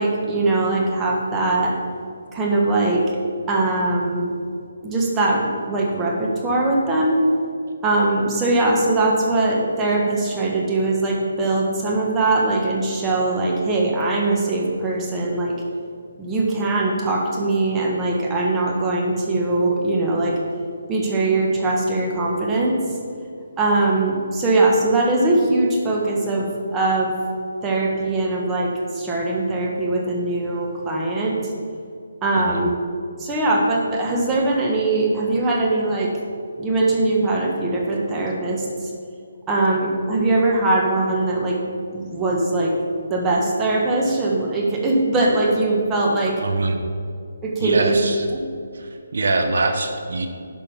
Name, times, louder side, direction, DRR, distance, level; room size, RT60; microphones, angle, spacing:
voice 1, 0.0-1.8 2.3-3.2 3.5-4.3 4.8-7.2 7.8-15.6 16.2-20.4 20.9-22.8 23.6-27.1 27.6-31.4 32.2-32.7 33.2-36.1 36.6-38.9 39.5-41.6 41.9-42.7 43.1-46.4 47.4-48.0 48.3-48.4, right 2 dB, 15° right, -2 dB, 1.5 m, -21 dB
voice 2, 46.4-46.8 47.6-48.3 48.7-50.3, right 3 dB, 70° right, 5 dB, 1.0 m, -23 dB
11.0 x 5.4 x 5.6 m, 2.3 s
hypercardioid pair, 160°, 0 cm